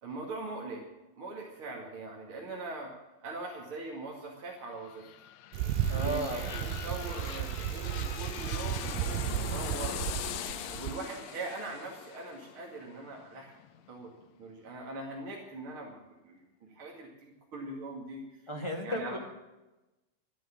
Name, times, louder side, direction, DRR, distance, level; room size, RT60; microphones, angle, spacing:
voice 1, 0.0-0.8 1.2-2.9 3.2-5.1 5.9-10.0 10.6-13.5 13.9-14.1 14.4-18.5 18.8-19.2, right 2 dB, 40° right, -1 dB, 2.8 m, -41 dB
sound 1, 4.6-14.3 14.7-14.8, left 11 dB, 80° left, 1.5 m, -42 dB
Bicycle, 5.5-11.0, right 11 dB, 90° right, 2.4 m, -34 dB
voice 2, 5.9-6.5 18.5-19.2, equal, 15° left, 1 dB, 1.3 m, -34 dB
14.0 x 9.9 x 8.7 m, 1.0 s
omnidirectional pair, 3.9 m